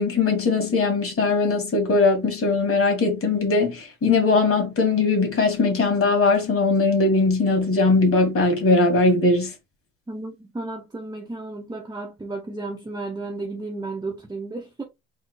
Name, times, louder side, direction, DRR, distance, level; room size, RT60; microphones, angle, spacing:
voice 1, 0.0-9.5, left 3 dB, 45° left, 2.3 m, -20 dB
voice 2, 10.1-14.8, right 2 dB, 10° right, 0.9 m, -33 dB
4.2 x 2.6 x 4.4 m
cardioid pair, 120°, 32 cm